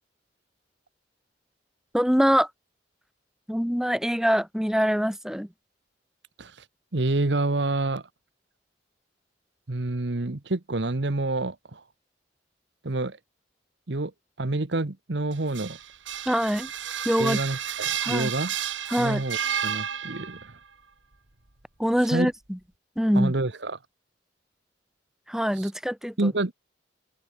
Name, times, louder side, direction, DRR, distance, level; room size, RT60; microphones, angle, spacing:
voice 1, 1.9-2.5 3.5-5.5 16.3-16.7 17.0-17.4 18.0-18.3 18.9-19.2 21.8-22.6 23.0-23.3 25.3-26.1, equal, 5° right, 2.5 m, -24 dB
voice 2, 6.9-8.0 9.7-11.8 12.8-13.2 13.9-14.1 14.4-15.8 17.2-18.5 19.0-20.6 22.1-22.3 23.1-23.8 25.6-25.7 26.2-26.5, right 2 dB, 65° right, 1.2 m, -28 dB
sound 1, 15.3-20.5, right 9 dB, 85° right, 3.0 m, -31 dB
head